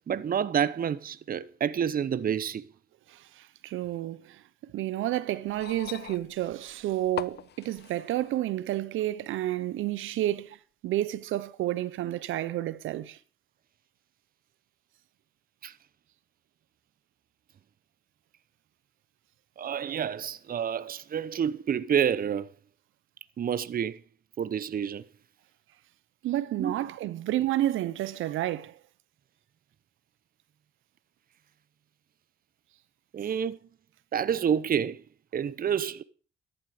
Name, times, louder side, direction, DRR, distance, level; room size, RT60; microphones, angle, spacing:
voice 1, 0.1-2.6 15.6-15.7 19.6-22.5 23.4-24.0 24.4-25.0 26.6-26.7 33.1-33.6 34.1-35.0 35.3-36.0, right 8 dB, 45° right, 0.9 m, -28 dB
voice 2, 3.1-4.4 4.7-10.6 10.8-13.2 26.2-28.8, right 14 dB, 85° right, 0.9 m, -30 dB
sound 1, 5.5-8.4 9.5-9.6, left 11 dB, 55° left, 0.7 m, -41 dB
14.0 x 11.0 x 5.1 m
cardioid pair, 90°, 20 cm